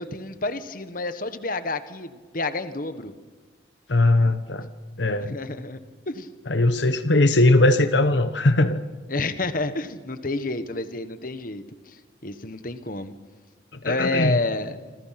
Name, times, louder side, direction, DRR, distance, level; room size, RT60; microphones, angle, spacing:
voice 1, 0.0-3.1 5.2-6.3 9.1-13.1 13.8-14.8, left 2 dB, 45° left, 11 dB, 1.4 m, -29 dB
voice 2, 3.9-4.7 5.0-5.3 6.5-8.8 13.8-14.4, left 2 dB, 70° left, 10 dB, 1.2 m, -19 dB
27.0 x 26.0 x 6.0 m, 1.4 s
head